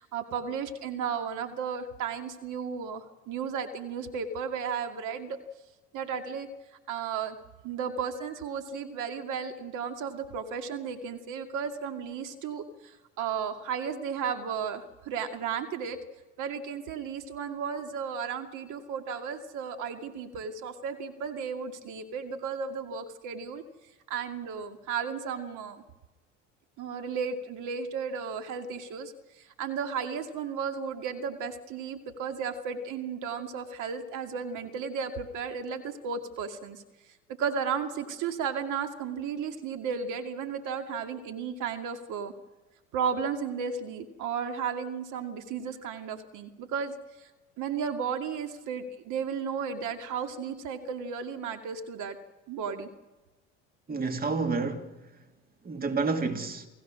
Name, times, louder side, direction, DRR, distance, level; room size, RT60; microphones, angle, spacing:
voice 1, 0.0-5.4 5.9-6.5 6.9-7.4 7.6-16.0 16.4-23.6 24.1-25.8 26.8-36.8 37.4-42.3 42.9-46.9 47.6-52.2 52.5-52.9, right 6 dB, 55° right, 2.4 m, -34 dB
voice 2, 53.9-54.9 55.6-56.7, right 4 dB, 25° right, 2.3 m, -29 dB
29.0 x 17.0 x 6.4 m
hypercardioid pair, 80°, 36 cm